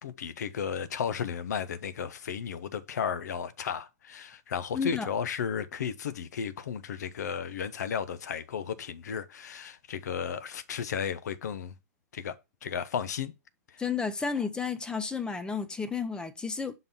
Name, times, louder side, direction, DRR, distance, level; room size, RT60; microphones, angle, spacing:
voice 1, 0.0-11.7 12.1-12.4 12.6-13.3 13.7-13.8, left 7 dB, 75° left, 0.7 m, -34 dB
voice 2, 4.7-5.1 13.8-16.7, left 5 dB, 10° left, 0.6 m, -32 dB
5.5 x 3.9 x 5.3 m
hypercardioid pair, 130°, 9 cm